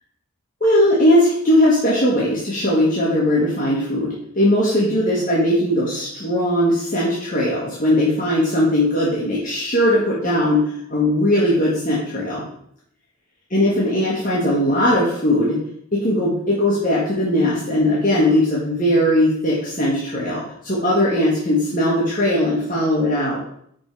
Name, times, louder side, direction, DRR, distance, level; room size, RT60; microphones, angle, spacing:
voice 1, 0.6-12.4 13.5-15.6 15.9-23.4, left 1 dB, 40° left, -7 dB, 1.5 m, -19 dB
5.4 x 5.3 x 4.7 m, 0.70 s
head